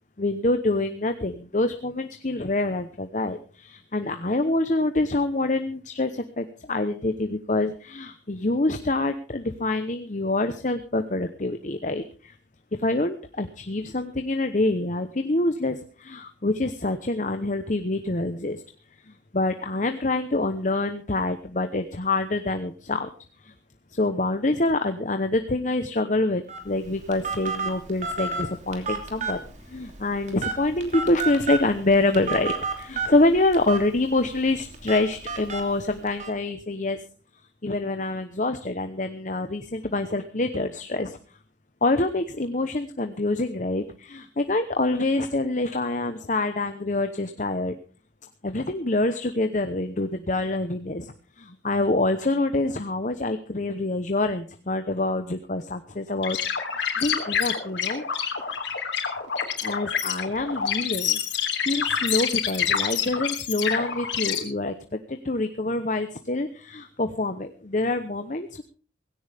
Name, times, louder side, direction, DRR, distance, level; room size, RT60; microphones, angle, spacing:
voice 1, 0.2-12.3 12.8-18.6 19.1-23.1 23.4-23.5 23.9-29.4 29.7-37.0 37.6-41.2 41.8-47.7 48.4-51.1 51.4-56.4 57.0-58.0 59.6-61.2 61.6-68.6, left 2 dB, 40° left, 8 dB, 0.9 m, -26 dB
Telephone, 26.5-36.3, right 4 dB, 40° right, 2.9 m, -33 dB
sound 1, 56.2-64.4, left 7 dB, 70° left, 3.3 m, -27 dB
17.5 x 16.5 x 3.5 m, 0.38 s
head